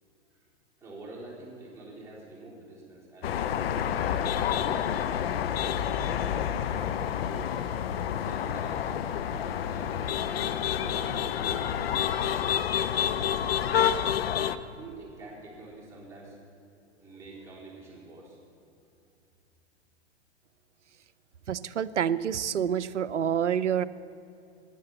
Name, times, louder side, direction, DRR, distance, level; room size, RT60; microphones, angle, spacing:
voice 1, 0.8-3.5 4.0-5.8 6.3-7.0 7.2-7.7 8.0-10.2 10.7-12.9 14.2-16.5 16.9-18.4, right 2 dB, 10° right, -7 dB, 3.7 m, -47 dB
sound 1, 3.2-14.6, left 9 dB, 60° left, 0.7 m, -28 dB
voice 2, 21.5-23.8, right 8 dB, 80° right, 16 dB, 0.6 m, -27 dB
10.5 x 10.0 x 8.0 m, 2.7 s
figure-of-eight pair, 110°, 35 cm